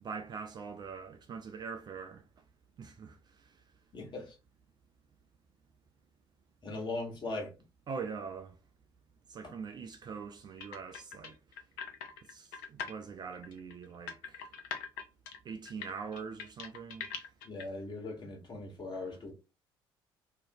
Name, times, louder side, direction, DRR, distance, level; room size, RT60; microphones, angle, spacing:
voice 1, 0.0-2.2 2.8-3.2 7.9-8.6 9.3-11.4 12.3-14.4 15.5-17.1, right 5 dB, 35° right, 0.3 m, -43 dB
voice 2, 3.9-4.4 6.6-7.5 9.4-9.5 17.4-19.3, left 2 dB, 35° left, 1.2 m, -39 dB
sound 1, 10.6-12.9 13.3-17.6, left 7 dB, 65° left, 0.4 m, -42 dB
2.5 x 2.1 x 2.6 m
figure-of-eight pair, 50°, 13 cm